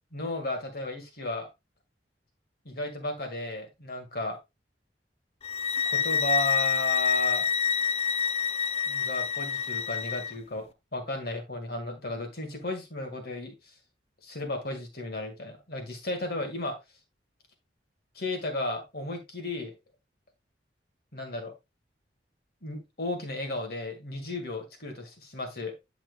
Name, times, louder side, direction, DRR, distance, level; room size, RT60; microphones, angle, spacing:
voice 1, 0.1-1.5 2.7-4.4 5.9-7.5 8.9-13.5 14.2-16.8 18.1-19.7 21.1-21.5 22.6-25.8, left 2 dB, 60° left, 4 dB, 2.0 m, -34 dB
sound 1, 5.4-10.3, left 6 dB, 35° left, 0.4 m, -27 dB
10.0 x 6.0 x 2.3 m, 0.22 s
head